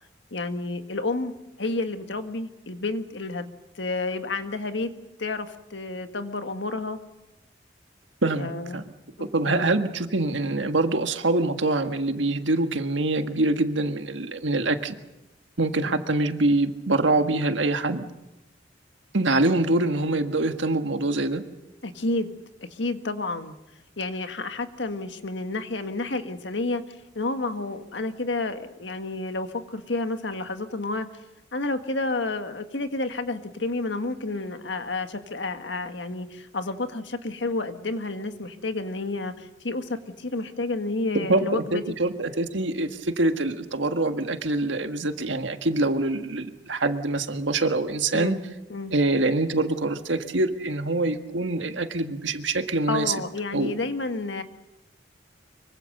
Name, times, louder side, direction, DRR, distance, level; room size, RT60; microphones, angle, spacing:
voice 1, 0.3-1.3 1.6-3.4 3.7-4.9 5.2-7.0 8.4-8.8 9.2-9.7 15.8-16.0 21.8-22.3 22.7-23.6 24.0-31.1 31.5-41.8 48.1-48.4 48.7-48.9 52.9-54.4, left 2 dB, 70° left, 8 dB, 1.7 m, -30 dB
voice 2, 9.2-15.0 15.6-18.0 19.1-21.4 41.1-48.4 48.9-53.1 53.5-53.7, right 2 dB, 80° right, 7 dB, 1.7 m, -25 dB
24.5 x 24.0 x 6.7 m, 0.96 s
head